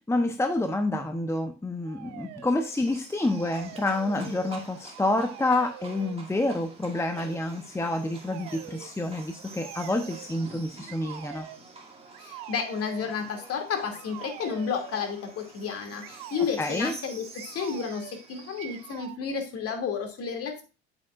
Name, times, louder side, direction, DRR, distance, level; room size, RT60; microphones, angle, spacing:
voice 1, 0.1-11.5 16.6-16.9, left 2 dB, 10° left, 6 dB, 0.9 m, -28 dB
sound 1, 1.8-2.7 3.1-4.6 4.9-6.2 6.9-7.4 8.2-8.9 9.6-10.3 10.9-11.6 12.1-13.1 13.9-15.1 16.0-16.5 17.4-18.2 18.6-19.2, right 15 dB, 60° right, 0.9 m, -44 dB
Livestock farm animals working animals, 2.6-19.1, right 3 dB, 20° right, 2.5 m, -48 dB
voice 2, 12.2-20.6, left 6 dB, 45° left, 5 dB, 2.5 m, -32 dB
8.2 x 8.0 x 2.5 m, 0.31 s
hypercardioid pair, 75°, 33 cm